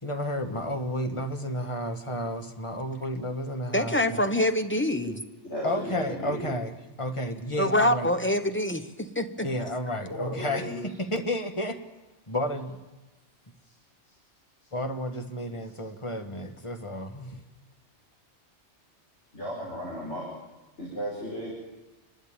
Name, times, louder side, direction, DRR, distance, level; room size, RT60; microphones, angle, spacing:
voice 1, 0.0-4.2 5.6-6.7 7.0-8.1 9.4-10.6 11.0-11.8 12.3-12.8 14.7-17.4, left 1 dB, 25° left, 5 dB, 1.5 m, -31 dB
voice 2, 3.7-5.2 7.6-9.5, left 1 dB, 10° left, 8 dB, 0.9 m, -25 dB
voice 3, 5.5-6.5 10.1-10.8 13.6-13.7 14.0-14.1 14.6-14.7 15.6-15.8 19.3-20.3 20.8-21.5, equal, 75° left, -5 dB, 5.7 m, -35 dB
28.0 x 12.0 x 8.9 m, 1.1 s
omnidirectional pair, 1.2 m